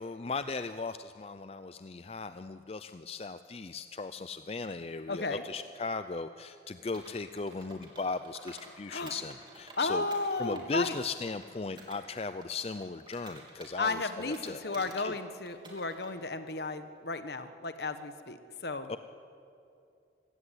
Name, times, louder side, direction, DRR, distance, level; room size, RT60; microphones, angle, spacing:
voice 1, 0.0-10.0 10.4-15.2 18.9-19.0, left 4 dB, 35° left, 11 dB, 0.4 m, -37 dB
voice 2, 5.1-5.4 8.9-9.1 9.8-11.0 13.8-18.9, left 3 dB, 60° left, 9 dB, 1.4 m, -34 dB
Computer keyboard, 6.9-8.7 9.1-12.0 12.4-15.1 15.5-16.1, right 2 dB, 25° right, 3.6 m, -52 dB
24.0 x 16.0 x 9.9 m, 2.6 s
head